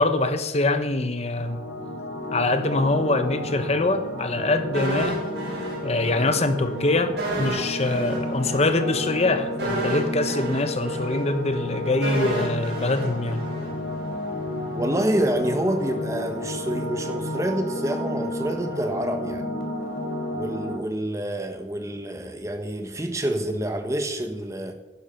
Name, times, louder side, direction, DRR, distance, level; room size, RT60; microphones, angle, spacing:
voice 1, 0.0-1.6 2.3-5.2 5.8-13.4, left 2 dB, 35° left, 1.0 m, -24 dB
sound 1, 1.3-20.8, left 1 dB, 75° left, 3.2 m, -32 dB
sound 2, 4.7-6.4 6.6-6.8 7.2-14.2 14.5-14.7, right 1 dB, 70° right, 4.9 m, -31 dB
voice 2, 14.7-19.5 20.3-24.7, right 1 dB, 15° right, 1.2 m, -27 dB
16.0 x 10.5 x 5.7 m
head